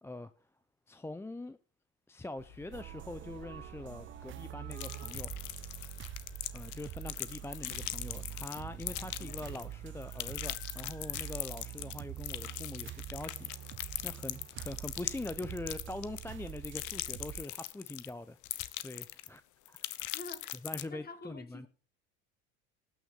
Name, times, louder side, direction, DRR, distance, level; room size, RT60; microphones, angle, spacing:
voice 1, 0.0-0.3 0.9-1.6 2.1-5.3 6.5-19.4 19.7-20.1 20.6-21.7, left 2 dB, 5° left, 0.6 m, -43 dB
sound 1, 2.4-11.3, left 3 dB, 85° left, 4.5 m, -57 dB
sound 2, 2.7-17.4, right 13 dB, 35° right, 0.5 m, -45 dB
sound 3, 4.7-9.7 10.0-18.1 18.4-19.4 19.7-20.8, left 16 dB, 60° left, 1.1 m, -40 dB
voice 2, 9.2-9.6 12.4-12.6 20.1-20.5 20.9-21.7, left 3 dB, 25° left, 2.5 m, -48 dB
18.5 x 6.3 x 5.2 m
hypercardioid pair, 85°, 35 cm